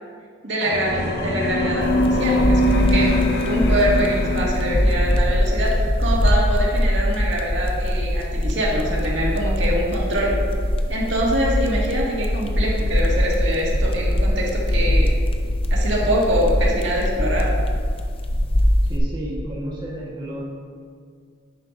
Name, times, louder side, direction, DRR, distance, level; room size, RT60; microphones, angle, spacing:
voice 1, 0.4-3.1 3.4-10.4 10.9-15.1 15.7-17.5, right 1 dB, 70° right, -4 dB, 1.9 m, -24 dB
sound 1, 0.6-5.3, left 1 dB, 55° left, 1.1 m, -23 dB
sound 2, 1.8-19.0, equal, 30° left, 0.6 m, -22 dB
voice 2, 18.9-20.4, equal, 25° right, -5 dB, 1.4 m, -32 dB
10.5 x 9.4 x 2.6 m, 2.1 s
head